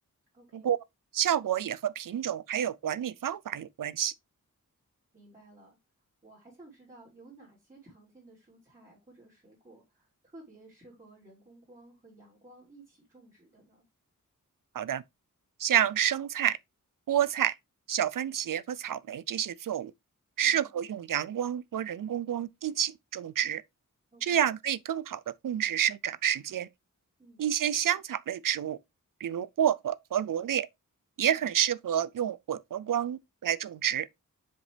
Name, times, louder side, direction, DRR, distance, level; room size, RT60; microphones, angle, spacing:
voice 1, 0.3-0.7 5.1-5.8 6.2-13.8 20.4-20.7 24.1-24.5 27.2-27.4 31.3-31.4, right 2 dB, 25° right, 3.6 m, -55 dB
voice 2, 1.1-4.1 14.7-15.0 15.6-16.6 17.1-17.6 17.9-19.9 20.4-23.6 24.2-26.7 27.4-28.8 29.2-30.7 31.2-34.1, right 10 dB, 75° right, 0.5 m, -29 dB
6.9 x 5.2 x 3.3 m
wide cardioid pair, 115°, 33 cm